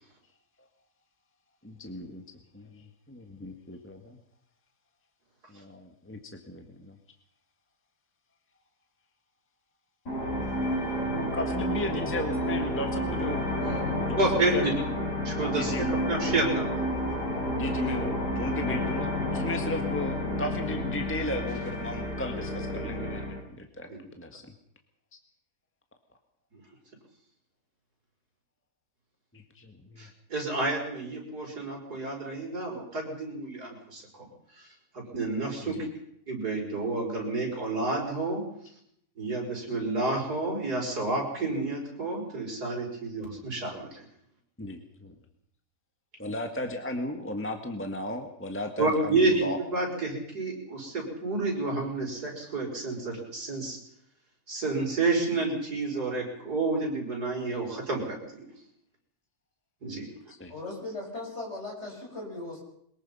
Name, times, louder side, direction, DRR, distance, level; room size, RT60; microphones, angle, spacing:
voice 1, 1.6-2.2 2.5-4.2 5.5-6.2 6.5-7.0 11.1-14.2 14.5-14.8 15.5-15.9 17.6-23.9 24.2-24.4 29.3-30.1 35.6-35.9 44.6-45.1 46.2-49.6 60.4-60.5, left 1 dB, 10° left, 4 dB, 1.5 m, -35 dB
sound 1, 10.1-23.4, left 1 dB, 75° left, 6.5 m, -30 dB
voice 2, 14.2-14.7 15.2-16.8 23.9-24.0 30.0-34.3 34.6-34.7 34.9-35.9 36.3-38.4 39.2-44.1 48.8-53.8 54.5-58.4 59.8-60.1, right 2 dB, 65° right, -1 dB, 6.4 m, -30 dB
voice 3, 60.5-62.6, left 2 dB, 40° left, -1 dB, 6.7 m, -38 dB
22.5 x 20.5 x 5.6 m, 0.71 s
omnidirectional pair, 1.8 m